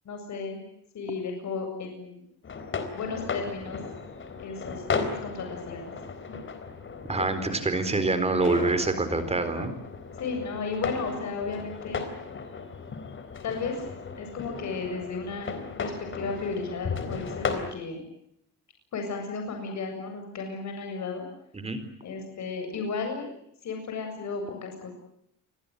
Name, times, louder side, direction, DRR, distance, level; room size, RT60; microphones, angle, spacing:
voice 1, 0.0-0.6 0.9-2.2 2.9-3.8 4.4-5.9 6.3-6.4 8.4-8.7 10.2-12.0 13.4-13.8 14.2-15.5 15.8-18.0 18.9-21.2 22.0-23.3 23.6-24.9, left 4 dB, 55° left, 3 dB, 7.9 m, -34 dB
sound 1, 2.4-17.7, left 5 dB, 35° left, 3.9 m, -36 dB
voice 2, 7.1-9.7 21.5-21.8, right 3 dB, 20° right, 11 dB, 4.1 m, -26 dB
29.0 x 23.5 x 8.1 m, 0.73 s
cardioid pair, 165°, 34 cm